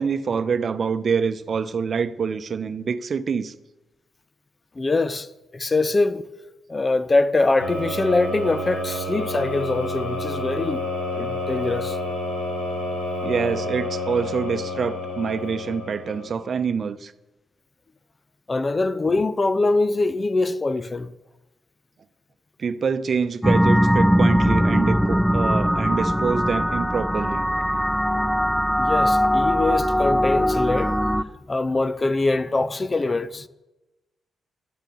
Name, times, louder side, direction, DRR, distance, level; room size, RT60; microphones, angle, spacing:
voice 1, 0.0-3.6 13.2-17.1 22.6-27.4, right 6 dB, 55° right, 0.8 m, -26 dB
voice 2, 4.8-6.2 6.7-12.0 18.5-21.1 28.8-31.0 31.5-33.5, left 3 dB, 35° left, 0.8 m, -23 dB
sound 1, 7.6-16.5, left 1 dB, 85° left, 5.3 m, -29 dB
sound 2, 23.4-31.2, equal, 5° left, 0.7 m, -20 dB
13.0 x 13.0 x 7.1 m
hypercardioid pair, 40°, 0 cm